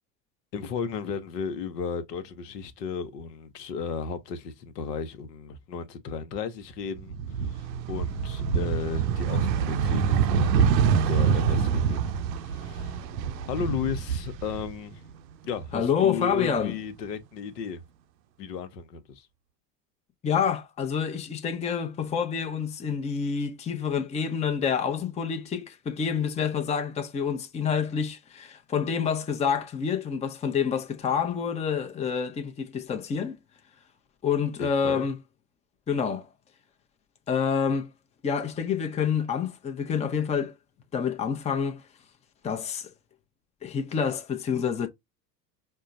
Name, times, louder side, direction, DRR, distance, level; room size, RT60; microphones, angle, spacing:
voice 1, 0.5-10.7 11.1-12.1 12.4-13.0 13.4-15.0 15.4-17.8 18.4-19.3 34.6-35.1, left 6 dB, 70° left, 0.9 m, -34 dB
sound 1, 7.0-15.1 15.5-16.6, right 7 dB, 80° right, 0.6 m, -26 dB
voice 2, 15.7-16.7 20.2-33.4 34.2-35.2 35.9-36.3 37.3-37.9 38.2-40.5 40.9-41.8 42.4-42.9 43.6-44.9, left 7 dB, 15° left, 0.6 m, -27 dB
5.3 x 2.2 x 2.5 m
hypercardioid pair, 80°, 50 cm